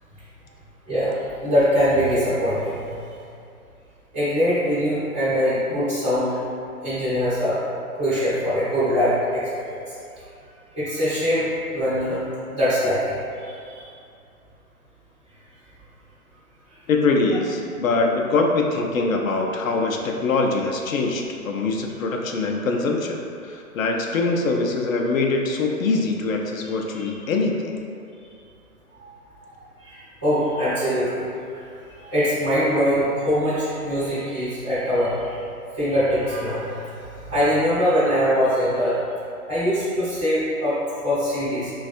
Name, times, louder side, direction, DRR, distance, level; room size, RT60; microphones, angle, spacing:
voice 1, 1.4-3.0 4.1-6.4 6.8-7.6 7.9-9.7 10.8-12.2 12.5-13.8 26.9-27.1 28.9-29.1 29.8-35.4 35.7-39.0 39.5-40.8 41.0-41.7, equal, 15° right, -15 dB, 0.4 m, -23 dB
voice 2, 16.9-27.7, left 3 dB, 65° left, 1 dB, 0.5 m, -23 dB
3.3 x 2.3 x 2.6 m, 2.5 s
hypercardioid pair, 145°, 44 cm